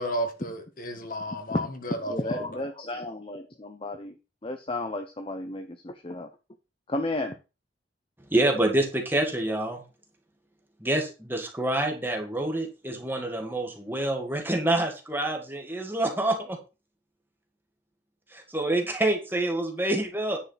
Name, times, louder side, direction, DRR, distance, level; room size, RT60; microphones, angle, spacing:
voice 1, 0.0-2.6, equal, 50° left, 1.7 m, -33 dB
voice 2, 2.1-4.2 4.4-6.3 6.9-7.4, left 2 dB, 30° left, 0.8 m, -33 dB
voice 3, 8.3-9.8 10.8-16.6 18.3-20.4, right 1 dB, 10° right, 2.0 m, -27 dB
10.0 x 4.8 x 5.8 m
head